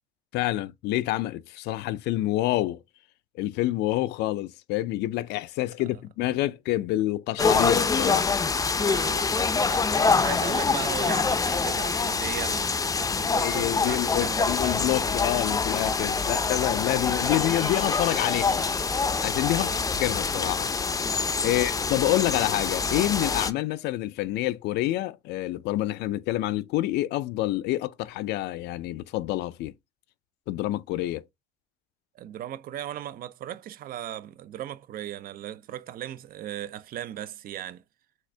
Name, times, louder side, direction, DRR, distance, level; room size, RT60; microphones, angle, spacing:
voice 1, 0.3-2.8 3.3-8.4 13.4-18.7 19.2-19.7 20.0-20.7 21.1-29.7 30.5-31.3, left 16 dB, 85° left, 0.5 m, -27 dB
sound 1, 7.4-23.5, left 4 dB, 20° left, 0.5 m, -25 dB
voice 2, 8.8-14.5 16.1-16.4 19.5-19.8 21.5-21.7 32.1-37.8, right 12 dB, 60° right, 0.5 m, -37 dB
sound 2, 10.0-20.6, right 3 dB, 40° right, 1.7 m, -46 dB
6.4 x 2.5 x 3.3 m
cardioid pair, 110°, 17 cm